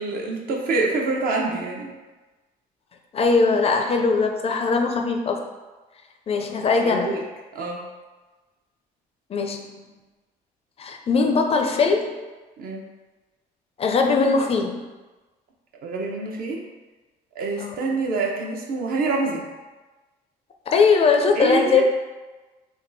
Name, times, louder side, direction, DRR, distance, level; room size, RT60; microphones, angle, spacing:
voice 1, 0.0-1.9 6.4-6.5 6.8-7.2 7.5-7.8 12.6-12.8 15.8-16.6 17.4-19.4 21.4-21.8, right 3 dB, 60° right, -1 dB, 0.7 m, -26 dB
voice 2, 3.1-5.4 6.3-7.1 9.3-9.8 10.8-12.1 13.8-14.8 17.6-17.7 20.7-21.8, left 4 dB, 35° left, 3 dB, 0.4 m, -20 dB
3.5 x 2.3 x 3.9 m, 1.2 s
cardioid pair, 110°, 17 cm